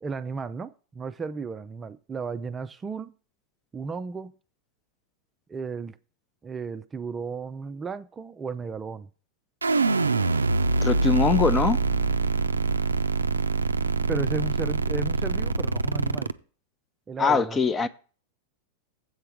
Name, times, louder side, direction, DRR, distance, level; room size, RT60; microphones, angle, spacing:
voice 1, 0.0-3.1 3.7-4.3 5.5-6.0 6.4-9.1 14.1-16.3 17.1-17.6, right 4 dB, 20° right, 0.5 m, -34 dB
sound 1, 9.6-16.3, right 3 dB, 75° right, 0.5 m, -24 dB
voice 2, 10.8-11.8 17.2-17.9, left 4 dB, 20° left, 0.7 m, -22 dB
7.9 x 5.6 x 7.2 m
figure-of-eight pair, 90°, 0 cm